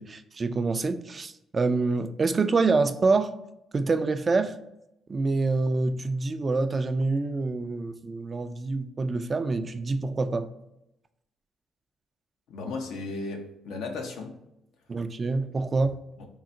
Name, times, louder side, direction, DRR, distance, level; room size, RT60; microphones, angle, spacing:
voice 1, 0.0-3.4 3.7-4.6 5.1-10.5 14.9-16.0, right 3 dB, 35° right, 0.3 m, -26 dB
voice 2, 12.5-14.4 16.2-16.3, left 3 dB, 85° left, 0.6 m, -35 dB
3.7 x 2.1 x 2.6 m
cardioid pair, 90°, 0 cm